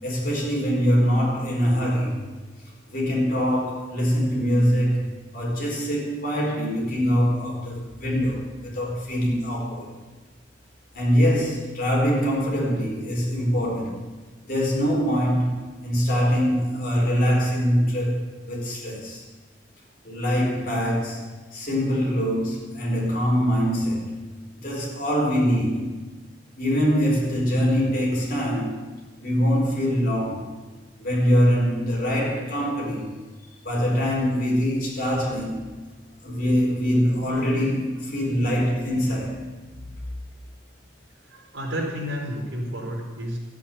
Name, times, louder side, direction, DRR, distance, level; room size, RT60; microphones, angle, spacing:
voice 1, 0.0-2.2 2.9-9.9 10.9-14.1 14.4-19.2 20.0-24.2 24.6-26.0 26.6-30.5 31.0-33.1 33.6-35.8 36.2-39.4, equal, 45° left, -3 dB, 4.3 m, -23 dB
voice 2, 41.3-43.4, equal, 75° right, -2 dB, 4.5 m, -31 dB
13.5 x 8.7 x 8.9 m, 1.2 s
head